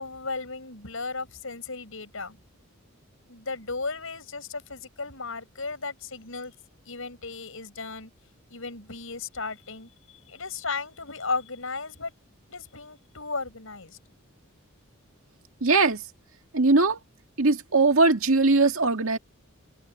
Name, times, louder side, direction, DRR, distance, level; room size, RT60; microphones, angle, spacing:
voice 1, 0.0-2.4 3.3-6.5 6.9-8.1 8.5-12.1 12.5-14.0, left 4 dB, 75° left, 7.0 m, -35 dB
voice 2, 15.6-16.0 16.5-17.0 17.4-19.2, right 3 dB, 80° right, 2.0 m, -20 dB
head